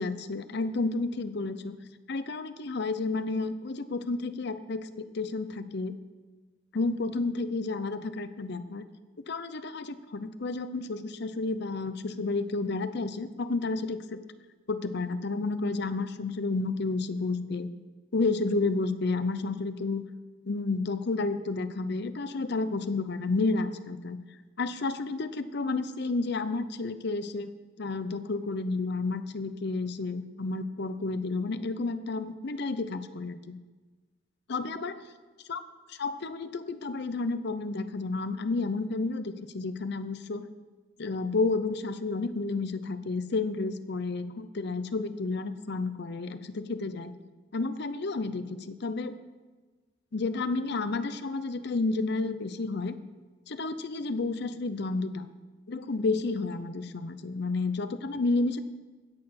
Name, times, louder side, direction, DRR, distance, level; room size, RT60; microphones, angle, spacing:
voice 1, 0.0-1.8 2.1-6.0 6.7-8.8 9.3-14.2 14.7-17.7 18.1-20.0 20.5-24.2 24.6-27.5 27.8-33.6 34.5-35.0 35.5-35.6 35.9-40.5 41.0-47.1 47.5-49.2 50.1-53.0 53.5-55.3 55.7-58.6, left 3 dB, 60° left, 12 dB, 0.7 m, -31 dB
16.0 x 6.7 x 5.8 m, 1.3 s
head